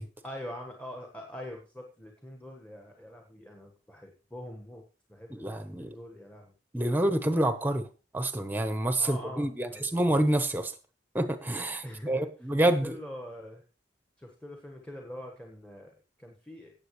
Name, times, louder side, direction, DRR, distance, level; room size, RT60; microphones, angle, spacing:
voice 1, 0.2-4.8 5.1-6.5 7.1-7.5 9.0-9.9 11.8-12.3 12.8-13.6 14.2-16.7, equal, 5° left, 2 dB, 1.4 m, -44 dB
voice 2, 5.3-5.9 6.7-7.9 8.1-10.7 11.1-13.0, right 1 dB, 10° right, 8 dB, 1.0 m, -27 dB
17.0 x 7.4 x 3.2 m, 0.33 s
head